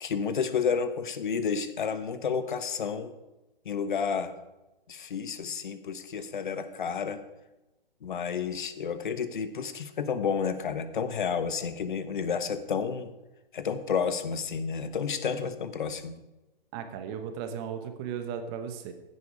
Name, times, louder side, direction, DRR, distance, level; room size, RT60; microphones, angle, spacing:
voice 1, 0.0-3.1 3.6-4.4 4.9-7.2 8.0-13.1 13.5-16.1, left 6 dB, 55° left, 11 dB, 1.2 m, -31 dB
voice 2, 16.7-18.9, right 7 dB, 25° right, 8 dB, 1.2 m, -36 dB
15.5 x 9.8 x 4.8 m, 1.0 s
figure-of-eight pair, 130°, 29 cm